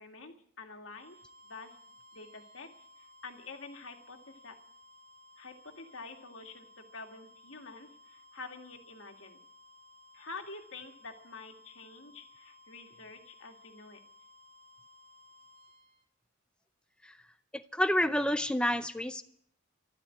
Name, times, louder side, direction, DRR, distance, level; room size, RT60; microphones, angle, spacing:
voice 1, 0.0-1.8 2.1-4.6 5.4-9.4 10.1-14.0, left 3 dB, 85° left, 4 dB, 2.1 m, -48 dB
sound 1, 0.7-16.0, left 2 dB, 70° right, 2.9 m, -58 dB
voice 2, 17.7-19.2, left 1 dB, 5° left, 9 dB, 0.5 m, -28 dB
12.5 x 12.5 x 8.5 m, 0.66 s
head